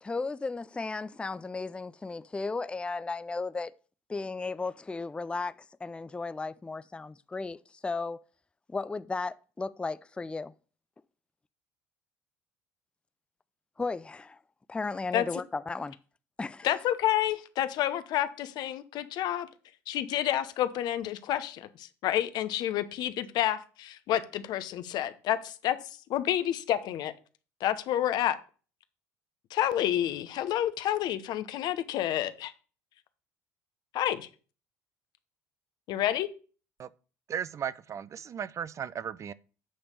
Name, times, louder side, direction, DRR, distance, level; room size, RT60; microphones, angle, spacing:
voice 1, 0.0-3.7 4.1-5.6 5.8-8.2 8.7-10.5 13.8-14.4 14.7-16.0 16.4-16.7, left 3 dB, 15° left, 0.4 m, -35 dB
voice 2, 16.6-19.5 19.9-25.8 26.1-27.1 27.6-28.4 29.5-32.5 33.9-34.3 35.9-36.3, left 12 dB, 65° left, 0.8 m, -29 dB
voice 3, 37.3-39.3, right 8 dB, 40° right, 0.4 m, -36 dB
8.6 x 3.5 x 6.6 m
supercardioid pair, 75°, 8 cm